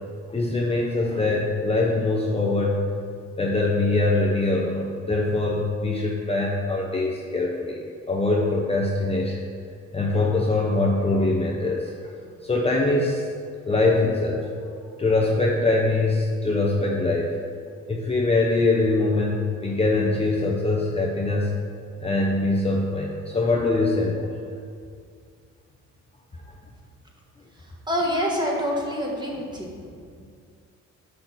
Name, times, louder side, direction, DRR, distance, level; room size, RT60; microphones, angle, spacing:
voice 1, 0.3-2.8 3.4-7.8 8.1-9.4 9.9-11.9 12.4-13.3 13.6-14.5 15.0-17.3 17.9-21.5 22.0-24.3, left 2 dB, 20° left, -2 dB, 0.8 m, -23 dB
voice 2, 27.9-29.7, equal, 15° right, -2 dB, 1.5 m, -26 dB
6.4 x 5.8 x 4.2 m, 2.2 s
cardioid pair, 90°, 30 cm